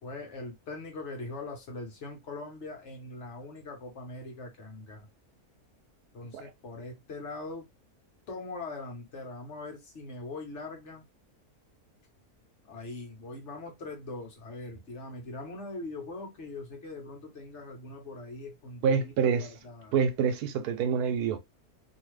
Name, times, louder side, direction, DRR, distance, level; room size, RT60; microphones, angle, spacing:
voice 1, 0.0-5.1 6.1-7.7 8.3-11.1 12.7-20.0, left 2 dB, 50° left, 1.2 m, -41 dB
voice 2, 18.8-19.5 19.9-21.4, right 6 dB, 90° right, 1.2 m, -26 dB
2.7 x 2.7 x 3.1 m
omnidirectional pair, 1.6 m